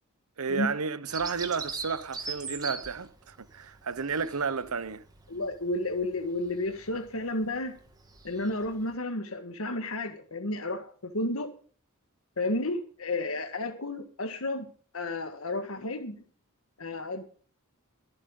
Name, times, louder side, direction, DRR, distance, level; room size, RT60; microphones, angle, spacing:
voice 1, 0.4-5.0, right 5 dB, 85° right, 0.9 m, -32 dB
Bird vocalization bird call bird song, 1.1-8.9, right 4 dB, 20° right, 2.3 m, -42 dB
voice 2, 5.3-7.7 8.2-11.5 12.4-14.7 14.9-16.2 16.8-17.2, left 2 dB, 70° left, 1.7 m, -32 dB
23.0 x 9.0 x 3.8 m
head